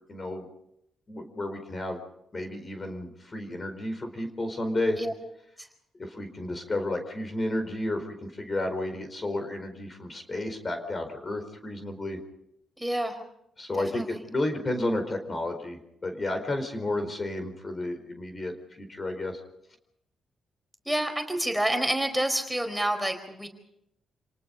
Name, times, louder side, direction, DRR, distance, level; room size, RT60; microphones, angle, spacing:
voice 1, 0.1-0.4 1.1-2.0 2.3-5.0 6.0-12.2 13.6-19.4, left 1 dB, 35° left, 7 dB, 4.5 m, -32 dB
voice 2, 12.8-13.2 13.8-14.2 20.8-23.5, right 1 dB, 5° right, 6 dB, 4.4 m, -28 dB
28.5 x 19.0 x 5.4 m, 0.79 s
cardioid pair, 70°, 0 cm